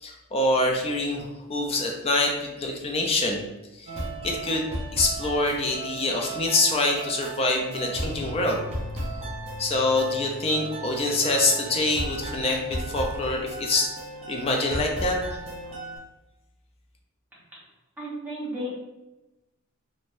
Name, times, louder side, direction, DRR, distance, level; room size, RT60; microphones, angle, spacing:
voice 1, 0.0-3.4 3.7-8.6 9.6-13.9 14.3-15.2, left 2 dB, 25° left, 1 dB, 0.4 m, -25 dB
sound 1, 3.9-16.0, right 1 dB, 30° right, 0.6 m, -35 dB
voice 2, 18.0-18.7, equal, 10° right, -9 dB, 1.0 m, -33 dB
3.2 x 2.1 x 2.5 m, 1.0 s
head